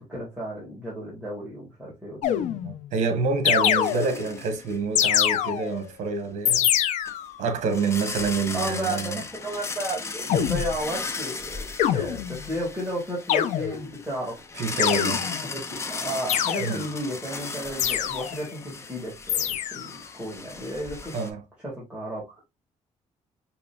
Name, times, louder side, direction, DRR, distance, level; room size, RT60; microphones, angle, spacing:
voice 1, 0.1-2.6 8.5-14.4 14.7-15.0 15.5-21.2 21.6-22.4, right 1 dB, 10° right, 1.8 m, -33 dB
sound 1, 2.2-2.9 3.5-4.4 5.0-5.9 6.5-7.4 10.3-10.8 11.8-12.5 13.3-14.0 14.8-15.5 16.3-17.0 17.8-18.5 19.3-20.0, left 10 dB, 80° left, 0.4 m, -25 dB
voice 2, 2.6-6.7 7.4-9.2 10.3-10.5 14.5-15.3 16.6-16.8 21.1-21.4, right 4 dB, 80° right, 0.9 m, -27 dB
sound 2, 3.8-4.8 5.2-5.3 7.0-7.1 7.7-21.3, left 4 dB, 20° left, 0.5 m, -36 dB
5.0 x 2.9 x 2.2 m
cardioid pair, 135°, 12 cm